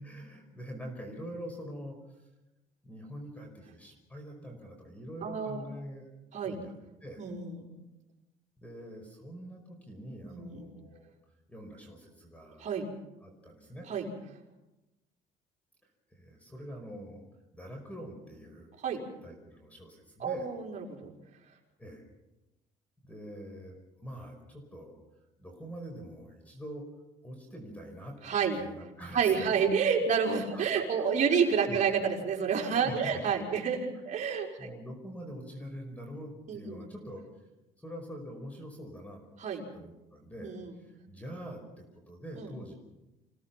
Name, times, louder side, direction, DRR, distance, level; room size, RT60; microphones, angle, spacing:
voice 1, 0.0-2.0 2.8-6.1 6.4-6.7 7.0-7.3 8.6-11.1 11.5-12.6 13.2-13.9 16.1-17.2 17.5-18.8 19.2-20.5 21.8-22.0 23.1-25.0 25.4-26.8 27.2-28.2 28.6-29.5 30.5-30.6 31.0-31.8 32.8-33.2 33.5-33.7 34.6-37.2 37.8-39.2 39.7-42.8, equal, 10° left, 3 dB, 5.2 m, -44 dB
voice 2, 5.2-5.6 6.3-6.5 7.2-7.7 10.3-10.6 12.6-12.9 13.9-14.1 18.8-19.0 20.2-21.1 28.2-28.6 29.1-34.5 36.5-36.8 39.4-39.7 40.4-40.7 42.4-42.5, right 6 dB, 45° right, 0 dB, 5.0 m, -29 dB
28.0 x 17.5 x 5.9 m, 0.99 s
cardioid pair, 110°, 17 cm